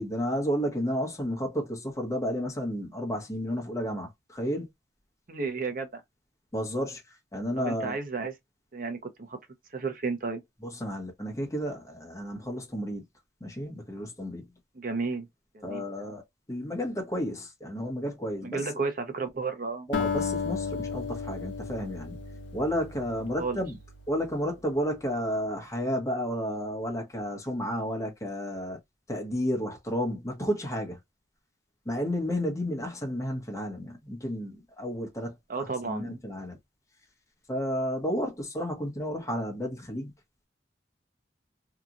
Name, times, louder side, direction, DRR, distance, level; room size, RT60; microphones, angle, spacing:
voice 1, 0.0-4.7 6.5-7.0 7.3-8.0 10.6-13.0 13.4-14.4 15.6-16.2 16.5-18.6 19.9-22.2 22.5-23.8 24.1-28.8 29.1-31.0 31.8-35.3 35.8-36.6 37.5-40.1, equal, 20° left, 1.0 m, -32 dB
voice 2, 5.3-6.0 7.6-8.3 8.7-9.4 9.7-10.4 14.7-15.3 15.5-16.1 18.4-19.9 23.4-23.6 35.5-36.2, right 4 dB, 50° right, 0.8 m, -32 dB
Acoustic guitar, 19.9-24.4, left 5 dB, 85° left, 0.7 m, -34 dB
2.9 x 2.4 x 2.5 m
head